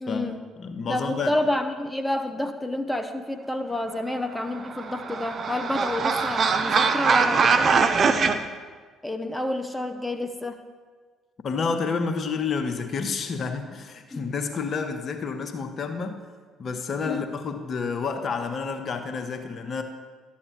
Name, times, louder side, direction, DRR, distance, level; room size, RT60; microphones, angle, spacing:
voice 1, 0.0-0.4 0.9-8.4 9.0-10.6 14.1-14.2 17.1-17.2, left 1 dB, 5° left, 6 dB, 0.7 m, -29 dB
voice 2, 0.6-1.3 11.4-16.2 16.6-19.8, left 5 dB, 45° left, 7 dB, 0.8 m, -29 dB
sound 1, 4.5-8.3, right 5 dB, 45° right, 0.5 m, -22 dB
12.0 x 8.4 x 3.0 m, 1.5 s
hypercardioid pair, 50°, 0 cm